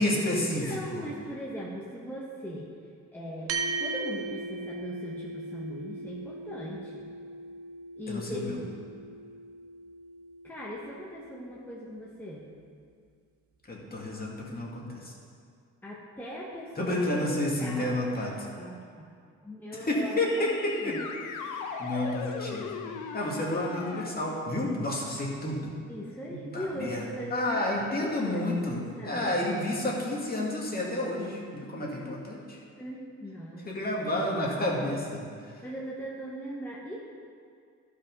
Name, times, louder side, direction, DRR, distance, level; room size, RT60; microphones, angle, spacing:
voice 1, 0.0-1.0 8.1-8.6 13.7-15.1 16.8-18.5 19.7-21.0 21.4-22.7 23.1-25.7 26.3-27.0 27.3-32.6 33.6-35.2 35.5-35.6, left 1 dB, 30° left, -3 dB, 2.3 m, -30 dB
voice 2, 0.6-2.7 3.1-3.5 3.8-7.1 8.0-8.7 10.4-12.6 15.8-17.3 17.6-18.0 18.6-19.1 19.4-20.5 20.8-21.0 25.9-27.7 28.0-29.5 31.7-32.3 32.8-33.7 34.0-34.1 35.6-37.0, equal, 5° left, -5 dB, 1.4 m, -39 dB
sound 1, 3.5-12.2, right 3 dB, 50° right, 0.9 m, -39 dB
sound 2, 20.3-24.1, left 5 dB, 85° left, 0.9 m, -38 dB
12.0 x 5.7 x 5.5 m, 2.2 s
cardioid pair, 90°, 30 cm